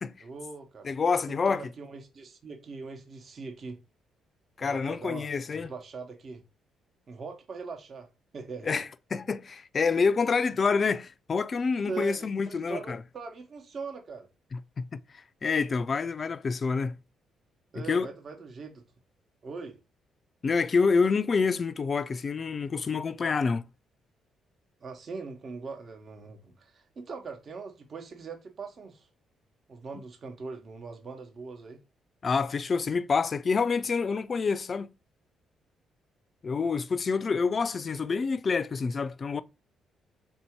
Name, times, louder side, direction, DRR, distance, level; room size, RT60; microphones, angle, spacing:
voice 1, 0.2-0.9 1.3-3.8 4.6-6.4 7.1-8.8 11.8-14.3 17.7-18.8 19.4-19.8 24.8-29.1 29.7-31.8, right 4 dB, 50° right, 0.9 m, -41 dB
voice 2, 0.8-1.6 4.6-5.7 8.7-13.0 14.5-15.0 15.4-16.9 17.9-18.1 20.4-23.6 32.2-34.9 36.4-39.4, left 5 dB, 40° left, 0.3 m, -27 dB
3.6 x 2.7 x 4.4 m
cardioid pair, 90°, 0 cm